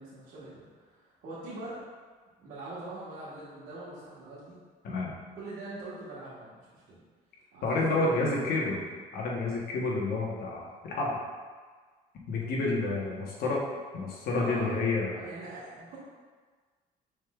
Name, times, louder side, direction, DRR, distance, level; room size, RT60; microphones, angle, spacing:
voice 1, 0.0-1.8 2.4-4.5 5.3-7.0 7.5-8.3 14.3-14.8 15.1-16.0, right 2 dB, 75° right, -11 dB, 1.5 m, -42 dB
voice 2, 7.6-8.8 9.1-11.2 12.3-13.7 13.9-15.2, left 3 dB, 65° left, -3 dB, 1.1 m, -29 dB
6.3 x 3.6 x 2.4 m, 1.5 s
cardioid pair, 110°, 17 cm